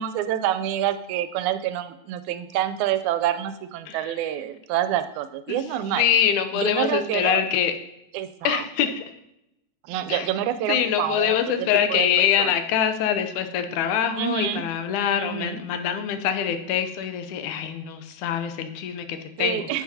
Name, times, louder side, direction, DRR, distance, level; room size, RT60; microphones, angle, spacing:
voice 1, 0.0-6.0 6.6-7.4 8.1-8.6 9.8-12.1 12.4-12.5 14.2-14.6 15.2-15.6 19.4-19.8, right 11 dB, 85° right, 11 dB, 2.0 m, -27 dB
voice 2, 6.0-7.7 8.4-9.0 10.1-10.3 10.7-19.8, left 9 dB, 90° left, 8 dB, 2.2 m, -24 dB
9.7 x 7.7 x 2.8 m, 0.84 s
omnidirectional pair, 3.4 m